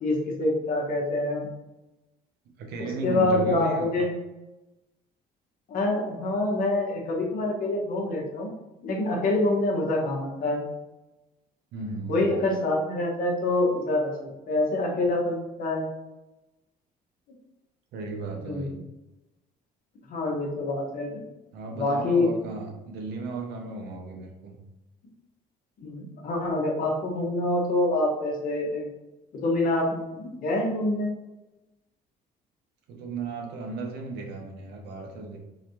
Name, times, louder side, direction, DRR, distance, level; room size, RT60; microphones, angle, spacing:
voice 1, 0.0-1.5 2.8-4.1 5.7-8.5 8.8-10.6 12.1-15.9 18.4-18.8 20.1-21.2 21.7-22.3 25.8-28.9 29.3-31.1, left 2 dB, 55° left, -1 dB, 1.2 m, -26 dB
voice 2, 2.6-3.9 11.7-12.2 17.9-18.8 21.5-24.6 32.9-35.4, right 3 dB, 80° right, 1 dB, 0.9 m, -35 dB
3.9 x 3.2 x 2.8 m, 1.0 s
cardioid pair, 110°, 17 cm